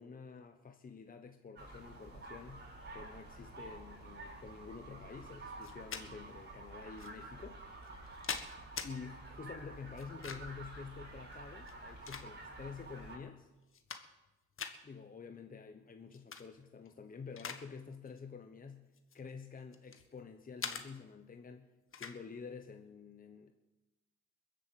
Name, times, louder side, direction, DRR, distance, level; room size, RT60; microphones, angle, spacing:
voice 1, 0.0-2.7 2.9-7.6 8.0-8.2 8.8-13.5 14.8-18.8 19.1-23.5, left 5 dB, 30° left, 6 dB, 1.0 m, -49 dB
sound 1, 1.6-13.2, right 2 dB, 35° right, 6.6 m, -50 dB
sound 2, 5.6-6.1 7.0-7.1 7.8-8.9 10.0-10.6 11.6-12.7 13.2-13.3 13.6-14.3 14.6-14.8 16.1-16.4 16.8-17.6 17.9-18.2 18.9-20.1 20.6-20.8 21.9-22.2, left 6 dB, 45° left, 1.5 m, -43 dB
21.5 x 7.7 x 7.8 m, 1.1 s
cardioid pair, 90°, 30 cm